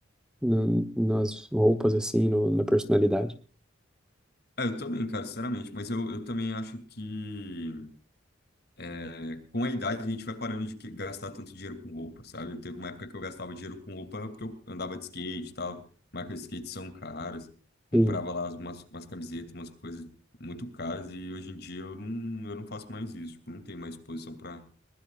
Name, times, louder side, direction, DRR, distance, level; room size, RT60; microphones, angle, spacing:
voice 1, 0.4-3.3 17.9-18.2, equal, 5° right, 10 dB, 1.0 m, -24 dB
voice 2, 4.6-7.9 8.8-15.8 16.1-17.5 17.9-20.1 20.4-24.6, left 2 dB, 55° left, 10 dB, 2.6 m, -36 dB
22.0 x 20.5 x 2.4 m, 0.37 s
head